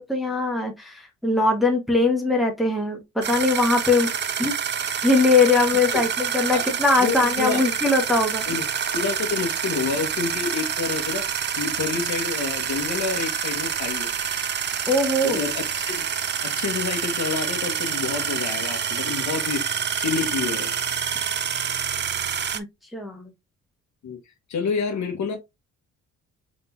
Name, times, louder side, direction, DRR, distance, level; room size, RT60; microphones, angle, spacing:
voice 1, 0.0-4.1 4.4-4.8 5.0-8.4 14.9-15.4 22.5-22.7 22.9-23.3, left 3 dB, ahead, 1.2 m, -21 dB
sound 1, 3.2-22.6, right 7 dB, 35° right, 0.6 m, -27 dB
voice 2, 7.0-7.6 8.5-8.7 8.9-11.3 11.6-14.1 15.2-16.1 16.4-20.7 24.0-24.2 24.5-25.4, left 5 dB, 65° left, 1.5 m, -28 dB
3.9 x 3.8 x 2.7 m
cardioid pair, 90°, 30 cm